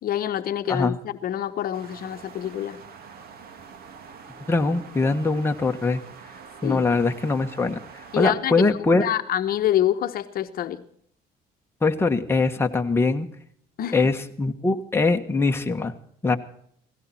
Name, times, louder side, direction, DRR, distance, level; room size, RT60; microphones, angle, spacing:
voice 1, 0.0-2.8 6.6-6.8 8.1-10.8 13.8-14.0, left 11 dB, 60° left, 1.0 m, -26 dB
sound 1, 1.7-8.3, right 6 dB, 65° right, 2.2 m, -45 dB
voice 2, 4.5-6.0 6.6-7.8 8.1-9.0 11.8-13.3 13.9-15.9 16.2-16.4, left 3 dB, 15° left, 1.4 m, -22 dB
17.5 x 17.0 x 4.3 m
cardioid pair, 110°, 17 cm